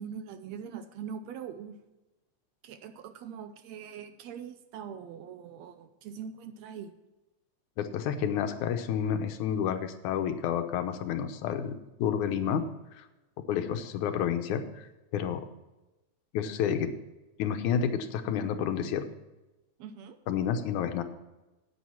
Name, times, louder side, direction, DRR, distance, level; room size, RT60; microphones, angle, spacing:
voice 1, 0.0-1.8 2.6-6.9 19.8-20.2, right 7 dB, 75° right, 10 dB, 1.8 m, -42 dB
voice 2, 7.8-12.6 12.9-13.0 13.5-14.9 15.1-15.5 16.3-16.9 17.4-19.0 20.3-21.0, left 8 dB, 85° left, 8 dB, 2.4 m, -30 dB
9.5 x 9.0 x 5.8 m, 1.0 s
omnidirectional pair, 3.4 m